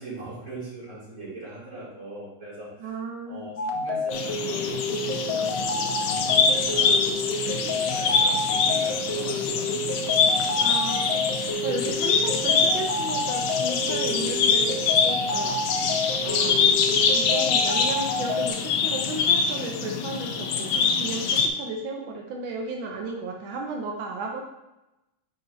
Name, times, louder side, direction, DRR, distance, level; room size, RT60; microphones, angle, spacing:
voice 1, 0.0-2.9 3.3-9.7, right 2 dB, 40° right, -8 dB, 3.0 m, -40 dB
voice 2, 2.8-3.5 10.6-11.0 11.3-15.6 16.2-16.7 17.1-24.4, right 3 dB, 90° right, 1 dB, 1.6 m, -34 dB
sound 1, 3.6-18.5, left 1 dB, 70° left, 0.6 m, -29 dB
sound 2, 4.1-21.5, left 5 dB, 85° left, 1.5 m, -24 dB
9.6 x 4.4 x 2.7 m, 0.94 s
omnidirectional pair, 2.1 m